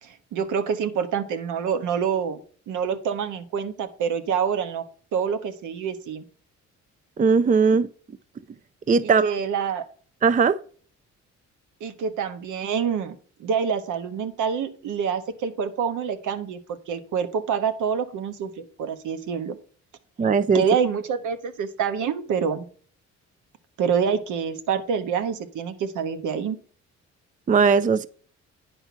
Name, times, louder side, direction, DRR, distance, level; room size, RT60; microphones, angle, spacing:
voice 1, 0.0-2.4 2.7-4.8 5.1-6.2 9.0-9.8 11.8-19.6 20.5-22.6 23.8-26.6, right 7 dB, 85° right, 1.3 m, -26 dB
voice 2, 7.2-7.9 8.9-9.3 10.2-10.6 20.2-20.6 27.5-28.1, right 5 dB, 25° right, 0.5 m, -18 dB
10.0 x 4.4 x 5.6 m
cardioid pair, 90°, 30 cm